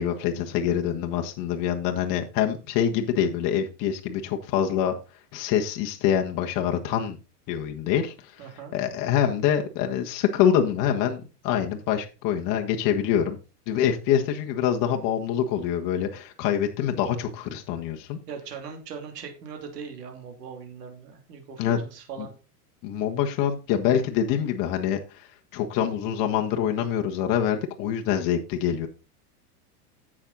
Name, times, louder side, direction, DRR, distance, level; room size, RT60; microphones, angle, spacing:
voice 1, 0.0-4.9 5.3-7.2 7.5-8.5 8.7-11.2 11.4-13.3 13.7-18.2 21.6-21.8 22.2-22.3 22.8-28.9, left 9 dB, 40° left, 3 dB, 1.5 m, -25 dB
voice 2, 8.4-8.8 18.3-22.3, right 6 dB, 85° right, 4 dB, 3.0 m, -40 dB
9.8 x 7.6 x 4.0 m, 0.31 s
supercardioid pair, 125°, 47 cm